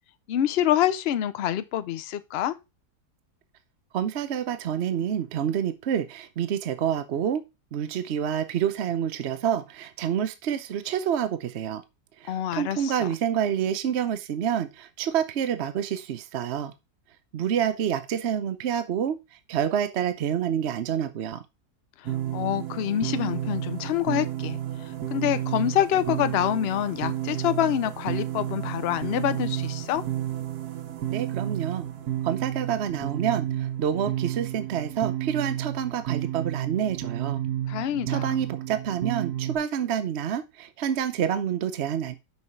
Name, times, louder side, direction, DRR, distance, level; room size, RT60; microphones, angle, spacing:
voice 1, 0.3-2.6 12.3-13.1 22.0-24.6 24.8-30.0 37.7-38.5, left 11 dB, 60° left, 0.7 m, -26 dB
voice 2, 3.9-7.4 7.7-11.8 12.2-16.7 17.3-19.2 19.5-21.4 31.1-31.8 32.2-37.4 38.1-42.2, right 9 dB, 55° right, 0.8 m, -28 dB
sound 1, 22.0-39.6, right 12 dB, 80° right, 1.4 m, -31 dB
6.2 x 5.9 x 4.5 m
omnidirectional pair, 1.7 m